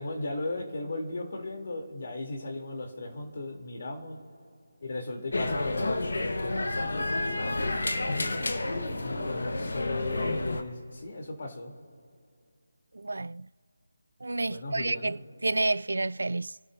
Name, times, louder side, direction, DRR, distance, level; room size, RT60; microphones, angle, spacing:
voice 1, 0.0-4.2 4.8-6.5 9.0-11.7 14.5-15.1, left 2 dB, 50° left, 3.2 m, -36 dB
sound 1, 5.3-10.6, left 2 dB, 75° left, 1.3 m, -30 dB
voice 2, 13.0-13.5 14.2-15.2 15.4-16.5, right 2 dB, 80° right, 0.4 m, -29 dB
28.5 x 12.5 x 2.7 m
figure-of-eight pair, 170°, 0 cm